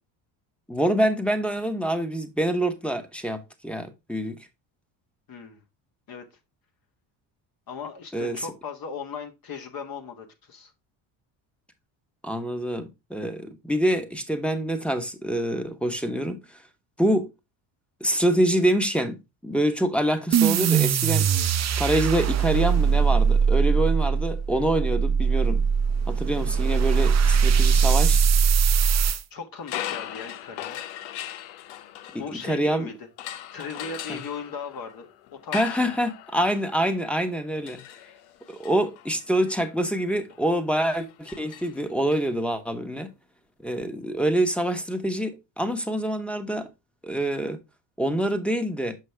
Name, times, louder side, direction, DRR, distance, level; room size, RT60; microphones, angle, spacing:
voice 1, 0.7-4.4 8.1-8.5 12.2-16.6 17.0-17.3 18.0-19.2 19.4-21.3 21.8-25.6 26.1-28.2 32.1-32.9 34.1-34.2 35.5-37.8 38.5-43.1 43.6-46.7 47.0-47.6 48.0-48.9, right 1 dB, ahead, 1.1 m, -26 dB
voice 2, 7.7-10.7 29.3-30.8 32.2-35.1 35.4-35.9, left 5 dB, 45° left, 1.4 m, -38 dB
sound 1, 20.3-29.2, right 6 dB, 35° right, 0.6 m, -21 dB
sound 2, 29.6-32.7 33.2-42.2, left 12 dB, 90° left, 0.7 m, -39 dB
6.5 x 5.3 x 3.4 m
supercardioid pair, 85°, 47 cm